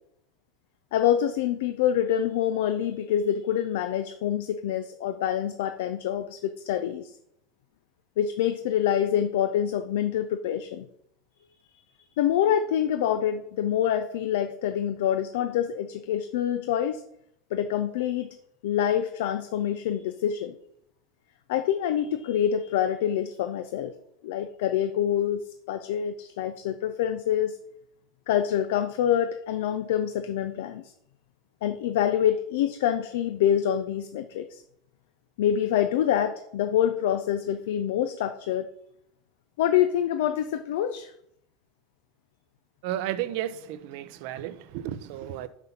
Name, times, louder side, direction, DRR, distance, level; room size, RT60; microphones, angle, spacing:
voice 1, 0.9-7.1 8.2-10.9 12.2-17.0 17.5-18.3 18.6-20.6 21.5-23.9 24.2-27.6 28.3-30.9 31.6-34.6 35.4-38.7 39.6-41.1, left 10 dB, 75° left, 9 dB, 0.5 m, -26 dB
voice 2, 42.8-45.5, right 12 dB, 65° right, 14 dB, 0.6 m, -33 dB
6.0 x 5.4 x 5.7 m, 0.75 s
hypercardioid pair, 95°, 0 cm